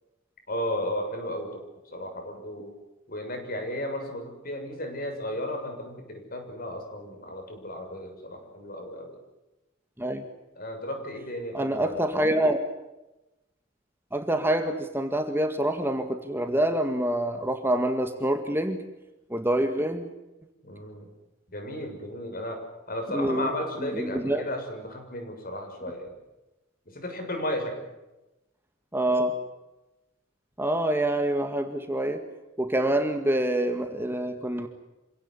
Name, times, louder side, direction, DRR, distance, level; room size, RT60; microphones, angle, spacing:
voice 1, 0.5-1.6 1.9-2.8 3.1-9.2 10.6-12.3 20.6-21.1 21.5-26.1 26.9-27.9, left 1 dB, 50° left, 4 dB, 7.0 m, -34 dB
voice 2, 11.5-12.6 14.1-18.8 19.3-20.1 23.1-23.5 23.8-24.4 28.9-29.3 30.6-32.2 32.6-34.7, right 1 dB, 10° right, 6 dB, 1.9 m, -26 dB
27.0 x 17.5 x 9.9 m, 0.98 s
head